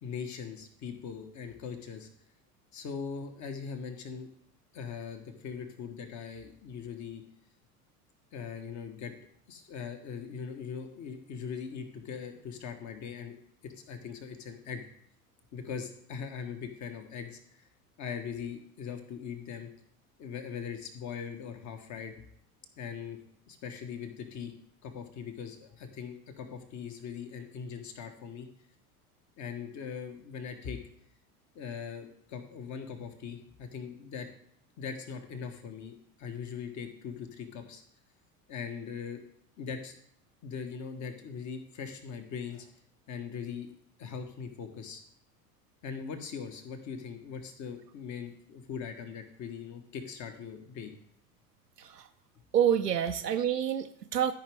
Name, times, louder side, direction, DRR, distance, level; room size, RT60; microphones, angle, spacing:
voice 1, 0.0-2.1 2.7-4.3 4.7-7.2 8.3-9.1 9.5-13.4 13.6-14.8 15.5-17.7 18.0-19.7 20.2-22.1 22.8-23.2 23.5-24.5 24.8-28.5 29.4-30.8 31.5-34.3 34.8-37.8 38.5-39.2 39.6-39.9 40.4-42.7 43.1-43.7 44.0-45.0 45.8-50.9, left 6 dB, 35° left, 6 dB, 1.5 m, -40 dB
voice 2, 52.5-54.3, right 9 dB, 90° right, 6 dB, 0.6 m, -28 dB
13.5 x 5.2 x 3.5 m, 0.68 s
figure-of-eight pair, 75°, 47 cm